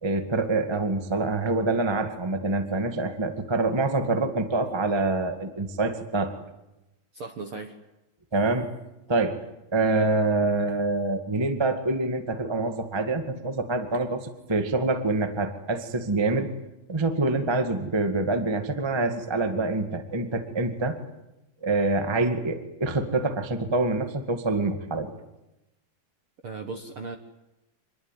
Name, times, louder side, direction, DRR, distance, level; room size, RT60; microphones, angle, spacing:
voice 1, 0.0-6.3 8.3-8.7 9.1-9.4 9.7-16.5 16.9-21.0 21.6-25.1, right 2 dB, 35° right, 6 dB, 0.4 m, -26 dB
voice 2, 7.1-7.8 26.4-27.2, right 4 dB, 65° right, 5 dB, 1.3 m, -36 dB
26.0 x 21.0 x 9.2 m, 0.94 s
omnidirectional pair, 4.5 m